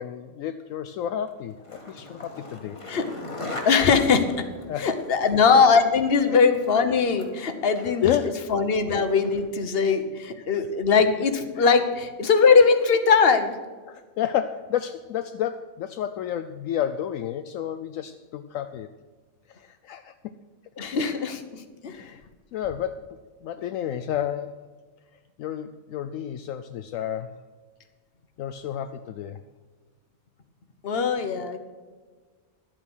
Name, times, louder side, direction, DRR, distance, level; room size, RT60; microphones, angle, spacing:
voice 1, 0.0-2.8 4.7-4.9 5.3-5.4 6.3-6.4 8.0-8.4 9.9-10.0 10.4-10.5 11.6-11.7 13.9-18.9 19.5-20.3 21.0-21.2 21.9-22.2 22.5-24.6 25.4-27.4 28.4-29.4, left 10 dB, 75° left, 10 dB, 0.9 m, -31 dB
Skateboard, 1.3-9.6, left 2 dB, 25° left, 1.6 m, -41 dB
voice 2, 3.6-4.4 4.8-8.1 8.5-13.5 20.8-21.9 30.8-31.6, left 5 dB, 45° left, 8 dB, 1.2 m, -21 dB
12.0 x 8.9 x 6.1 m, 1.4 s
omnidirectional pair, 1.4 m